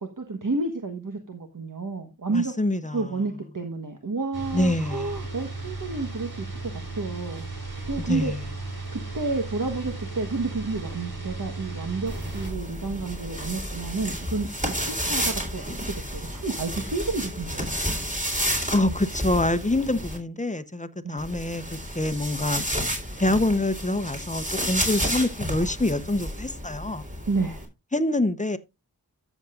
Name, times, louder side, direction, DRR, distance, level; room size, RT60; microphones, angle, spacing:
voice 1, 0.0-2.5 2.9-7.5 7.9-8.3 8.9-17.7 21.0-21.2 27.3-27.6, right 3 dB, 55° right, 1.3 m, -30 dB
voice 2, 2.3-3.2 4.5-5.1 8.0-8.5 18.7-22.6 23.2-27.0 27.9-28.6, left 1 dB, 20° left, 0.8 m, -26 dB
sound 1, 4.3-12.5, right 3 dB, 90° right, 5.7 m, -35 dB
sound 2, 12.1-20.2 21.2-27.7, equal, 20° right, 3.8 m, -31 dB
13.5 x 7.2 x 2.5 m
wide cardioid pair, 50°, 37 cm